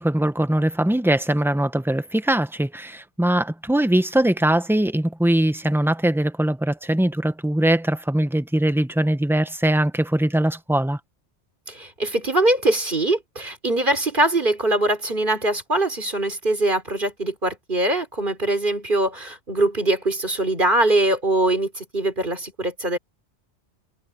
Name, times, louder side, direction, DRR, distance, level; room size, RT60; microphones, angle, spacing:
voice 1, 0.0-11.0, right 1 dB, ahead, 0.8 m, -21 dB
voice 2, 11.7-23.0, right 2 dB, 50° right, 4.4 m, -22 dB
omnidirectional pair, 1.1 m